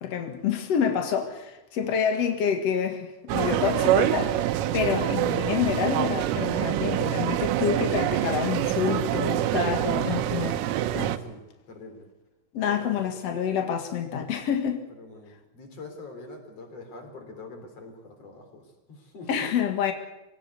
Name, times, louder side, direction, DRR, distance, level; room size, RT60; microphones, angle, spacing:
voice 1, 0.0-10.6 10.9-11.1 12.5-14.8 19.3-19.9, left 7 dB, 80° left, 5 dB, 1.4 m, -27 dB
sound 1, 3.3-11.2, right 12 dB, 85° right, 3.6 m, -25 dB
voice 2, 11.2-12.1 12.6-13.1 14.9-19.6, left 2 dB, 35° left, 5 dB, 4.2 m, -44 dB
24.0 x 17.5 x 8.3 m, 0.99 s
omnidirectional pair, 5.8 m